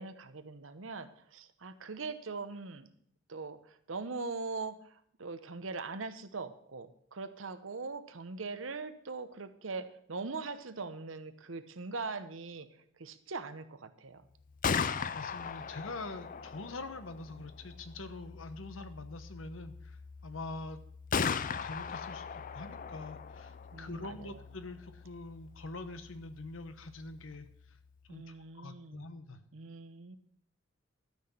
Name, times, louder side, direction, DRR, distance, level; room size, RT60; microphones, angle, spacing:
voice 1, 0.0-2.9 3.3-12.7 13.0-14.2 23.7-24.4 28.1-29.1 29.5-30.2, right 4 dB, 80° right, 11 dB, 1.0 m, -41 dB
Gunshot gunfire, 14.4-28.2, left 6 dB, 45° left, 0.5 m, -39 dB
voice 2, 15.1-20.0 20.2-20.8 21.1-27.8 28.1-29.4, left 2 dB, 85° left, 10 dB, 1.1 m, -45 dB
13.0 x 6.1 x 7.0 m, 0.64 s
head